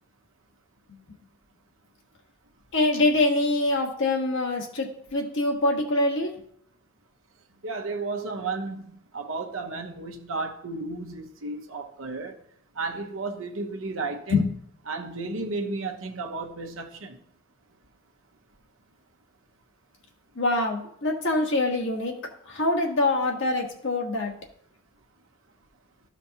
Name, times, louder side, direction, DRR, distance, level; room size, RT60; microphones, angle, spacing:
voice 1, 2.7-6.3 14.3-14.5 20.3-22.1 22.5-24.3, left 2 dB, 60° left, 1.5 m, -24 dB
voice 2, 7.6-12.4 12.7-14.4 14.9-17.2, right 3 dB, 70° right, 1.1 m, -33 dB
13.5 x 5.1 x 2.9 m
head